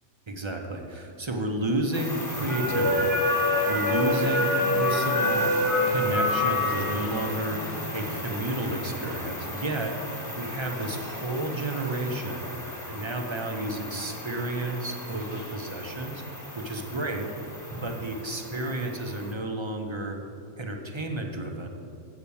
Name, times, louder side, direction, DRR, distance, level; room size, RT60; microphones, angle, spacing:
voice 1, 0.3-5.5 5.8-9.9 10.3-12.5 12.9-16.2 16.6-17.3 17.8-20.2 20.6-21.8, right 1 dB, 40° right, 3 dB, 0.4 m, -31 dB
sound 1, 1.9-19.3, left 1 dB, 15° left, 1.0 m, -29 dB
8.0 x 6.7 x 7.0 m, 2.4 s
omnidirectional pair, 1.5 m